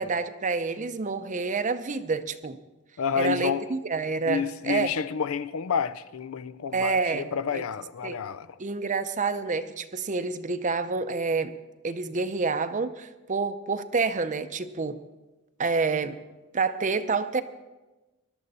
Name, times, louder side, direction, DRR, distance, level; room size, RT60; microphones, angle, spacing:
voice 1, 0.0-2.6 3.1-4.9 6.7-7.3 7.5-7.6 8.0-8.2 8.6-11.5 11.8-15.0 15.6-16.2 16.5-17.4, right 4 dB, 35° right, 0.6 m, -28 dB
voice 2, 3.0-3.7 4.3-8.6, left 7 dB, 70° left, 0.5 m, -29 dB
20.5 x 12.5 x 4.2 m
head